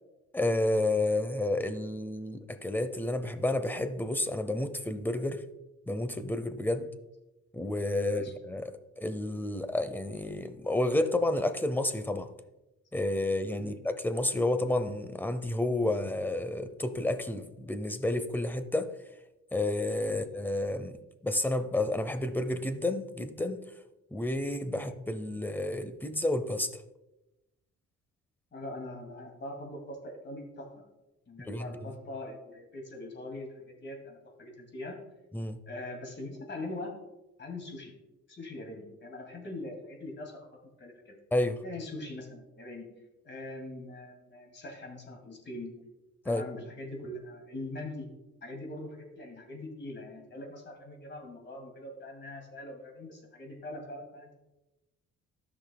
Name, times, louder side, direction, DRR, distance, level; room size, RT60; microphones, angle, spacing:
voice 1, 0.3-5.4 5.9-6.9 7.5-12.3 12.9-18.9 19.5-21.0 21.2-23.6 24.1-26.7 31.5-31.7 35.3-35.6 41.3-41.6 46.3-46.4, left 1 dB, 5° left, 10 dB, 0.7 m, -30 dB
voice 2, 28.5-30.8 31.3-35.0 35.7-36.9 37.4-37.9 38.3-40.4 40.8-41.2 41.6-42.9 43.2-45.7 46.2-48.1 48.4-54.3, left 2 dB, 40° left, 2 dB, 2.4 m, -42 dB
13.0 x 6.0 x 2.3 m, 0.99 s
cardioid pair, 90°, 30 cm